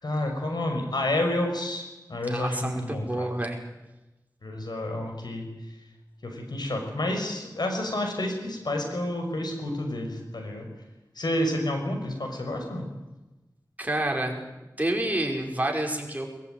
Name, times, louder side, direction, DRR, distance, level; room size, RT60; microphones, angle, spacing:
voice 1, 0.0-3.3 4.4-5.5 6.2-10.7 11.2-12.9, left 1 dB, 80° left, 4 dB, 6.1 m, -29 dB
voice 2, 2.3-3.6 13.8-14.4 14.8-16.2, right 1 dB, 20° right, 1 dB, 5.4 m, -28 dB
21.5 x 21.5 x 9.4 m, 1.0 s
wide cardioid pair, 55°, 7 cm